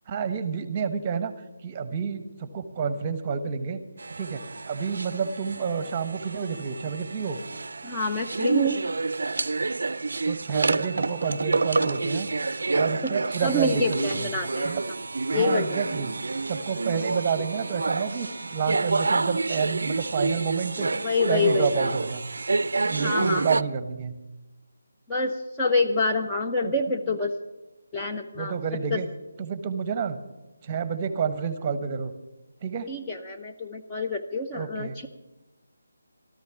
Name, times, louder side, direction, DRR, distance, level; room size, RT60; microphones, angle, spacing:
voice 1, 0.1-1.3 1.6-3.8 4.2-7.4 10.3-12.3 12.7-13.8 14.2-14.3 14.6-14.8 15.3-16.1 16.5-20.9 21.2-22.2 22.8-24.1 26.6-26.7 28.3-29.1 29.4-30.2 30.6-32.1 32.6-32.9 34.5-35.0, right 6 dB, 25° right, 12 dB, 1.0 m, -29 dB
sound 1, 4.0-23.6, right 3 dB, 65° right, 0.4 m, -29 dB
voice 2, 7.8-8.8 13.0-13.1 13.4-14.8 15.3-15.8 21.0-21.9 23.0-23.5 25.1-27.3 27.9-28.6 28.9-29.0 32.9-35.1, left 2 dB, 10° left, 0 dB, 0.7 m, -26 dB
14.0 x 13.5 x 5.8 m, 1.1 s
figure-of-eight pair, 155°, 0 cm